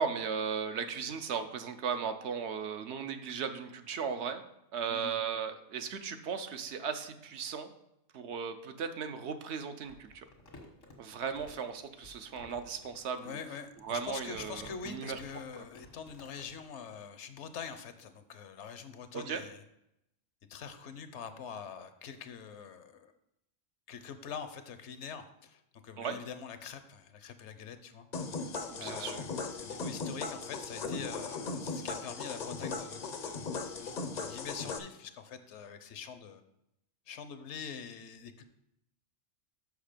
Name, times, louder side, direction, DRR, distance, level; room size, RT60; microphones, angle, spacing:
voice 1, 0.0-4.4 4.7-7.7 8.1-10.2 11.0-13.4 13.8-15.2 19.1-19.4 26.0-26.2 28.8-29.2, right 6 dB, 70° right, 8 dB, 0.9 m, -36 dB
Crumpling crinkling, 9.8-16.6, left 2 dB, 90° left, 1.8 m, -55 dB
voice 2, 13.2-19.6 20.5-23.1 23.9-28.1 28.8-36.4 37.1-38.4, left 7 dB, 70° left, 10 dB, 0.9 m, -44 dB
sound 1, 28.1-34.8, left 4 dB, 50° left, 0.6 m, -38 dB
6.6 x 5.8 x 5.0 m, 0.83 s
omnidirectional pair, 1.3 m